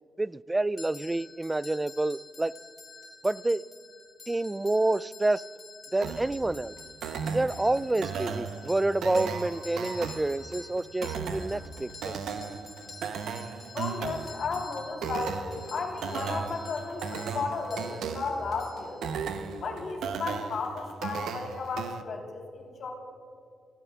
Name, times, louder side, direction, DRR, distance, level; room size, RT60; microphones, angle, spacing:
voice 1, 0.2-2.5 3.2-3.6 4.3-5.4 5.9-6.8 7.3-12.2, right 2 dB, 20° right, 0.3 m, -28 dB
sound 1, 0.8-19.5, left 3 dB, 45° left, 2.7 m, -49 dB
sound 2, 6.0-22.0, right 6 dB, 85° right, 0.8 m, -36 dB
voice 2, 13.7-19.0 19.5-22.9, left 4 dB, 65° left, 3.6 m, -34 dB
30.0 x 16.5 x 2.4 m
cardioid pair, 75°, 0 cm